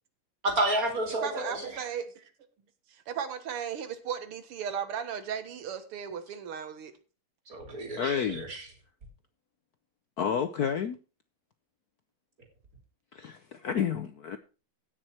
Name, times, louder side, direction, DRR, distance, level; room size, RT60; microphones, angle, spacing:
voice 1, 0.4-1.8 7.5-8.6, right 1 dB, 40° right, 3.5 m, -30 dB
voice 2, 1.1-2.2 3.1-6.9, right 8 dB, 85° right, 2.3 m, -36 dB
voice 3, 8.0-8.5 10.2-11.0 13.1-14.4, left 7 dB, 65° left, 1.0 m, -30 dB
16.5 x 6.5 x 4.4 m
omnidirectional pair, 2.4 m